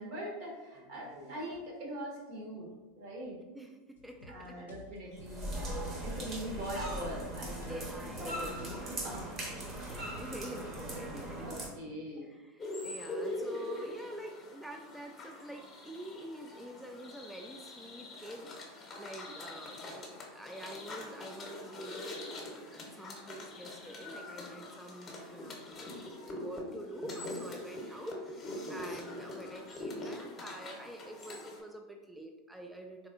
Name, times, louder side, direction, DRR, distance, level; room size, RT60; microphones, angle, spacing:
voice 1, 0.0-3.4 4.3-7.9 8.2-9.3 11.4-12.3, equal, 65° right, -3 dB, 1.3 m, -42 dB
voice 2, 3.5-4.8 7.7-8.6 9.0-11.5 12.2-20.1 20.3-25.9 26.2-33.1, right 1 dB, 5° right, 2 dB, 0.3 m, -47 dB
sound 1, 4.0-10.3, left 1 dB, 85° left, 0.4 m, -54 dB
sound 2, 5.2-11.7, right 1 dB, 35° right, 0.9 m, -39 dB
sound 3, 12.6-31.6, left 1 dB, 30° left, 0.9 m, -43 dB
3.4 x 3.2 x 2.5 m, 1.2 s
hypercardioid pair, 90°, 0 cm